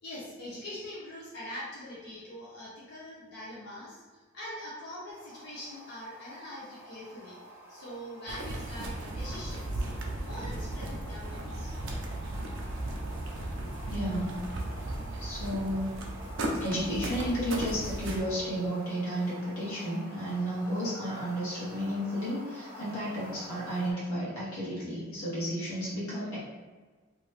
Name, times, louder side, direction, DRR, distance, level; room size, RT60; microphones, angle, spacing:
voice 1, 0.0-11.8, left 1 dB, 50° left, -7 dB, 0.7 m, -43 dB
sound 1, 5.1-23.9, equal, 10° right, 0.5 m, -49 dB
sound 2, 8.3-18.2, right 1 dB, 55° right, 0.5 m, -36 dB
voice 2, 13.9-14.5 15.2-15.9 16.6-26.4, equal, 75° left, -9 dB, 1.3 m, -32 dB
2.8 x 2.5 x 3.2 m, 1.4 s
head